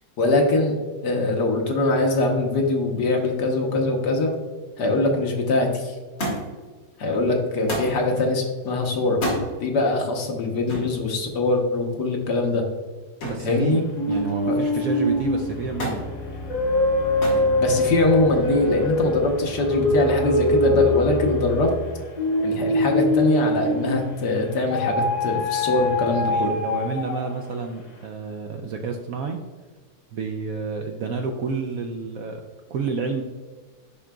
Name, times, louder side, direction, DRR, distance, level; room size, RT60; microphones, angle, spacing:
voice 1, 0.2-0.8 1.0-4.3 4.8-6.0 7.0-9.2 9.6-12.6 13.4-13.8 14.5-14.6 17.6-21.7 22.4-26.6, left 2 dB, 70° left, 1 dB, 1.6 m, -22 dB
Thump thud, 6.2-6.7 7.7-8.0 9.1-9.5 10.7-10.9 13.2-13.5 13.9-14.4 15.8-16.1 17.2-17.5 18.4-18.9 19.9-20.0, equal, 90° left, 2.7 m, -29 dB
voice 2, 13.2-13.8 14.1-16.0 26.2-29.4 30.1-32.4 32.7-33.2, right 4 dB, 70° right, 3 dB, 0.8 m, -29 dB
sound 1, 14.0-24.2 24.7-27.4, left 1 dB, 40° left, 0.6 m, -24 dB
11.0 x 3.8 x 2.3 m, 1.4 s
omnidirectional pair, 1.9 m